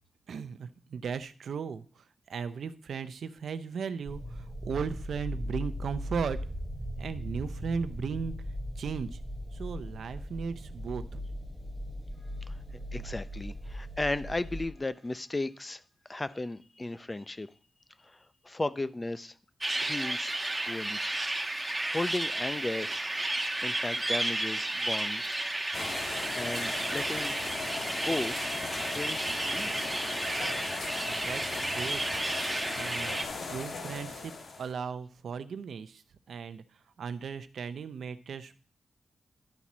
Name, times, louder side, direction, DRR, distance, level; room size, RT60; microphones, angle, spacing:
voice 1, 0.3-1.8 2.3-6.4 7.0-8.3 8.8-9.1 9.5-11.2 31.1-32.0 32.8-33.2 33.4-34.3 34.6-36.0 36.3-36.6 37.0-38.5, right 6 dB, 80° right, 11 dB, 0.6 m, -36 dB
sound 1, 4.1-14.7, equal, ahead, 1.1 m, -38 dB
voice 2, 12.5-15.8 16.1-17.5 18.0-19.3 19.8-20.3 20.7-21.2 21.9-22.9 23.6-25.4 26.4-27.3 27.9-28.4 28.8-30.0, left 2 dB, 25° left, 14 dB, 0.6 m, -35 dB
sound 2, 19.6-33.2, right 2 dB, 15° right, 1.3 m, -32 dB
sound 3, 25.7-34.7, left 3 dB, 65° left, 1.4 m, -38 dB
11.5 x 4.2 x 6.1 m, 0.41 s
cardioid pair, 75°, 0 cm